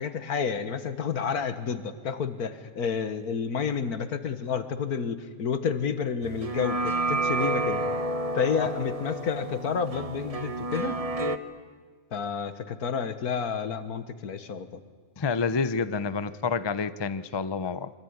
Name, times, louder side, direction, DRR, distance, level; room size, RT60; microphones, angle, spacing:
voice 1, 0.0-7.8 8.3-11.0 12.1-14.8, left 6 dB, 80° left, 11 dB, 1.9 m, -30 dB
sound 1, 6.2-11.4, right 2 dB, 25° right, 1.0 m, -30 dB
voice 2, 15.2-17.9, left 5 dB, 30° left, 14 dB, 0.5 m, -28 dB
24.5 x 24.0 x 9.6 m, 1.5 s
omnidirectional pair, 1.6 m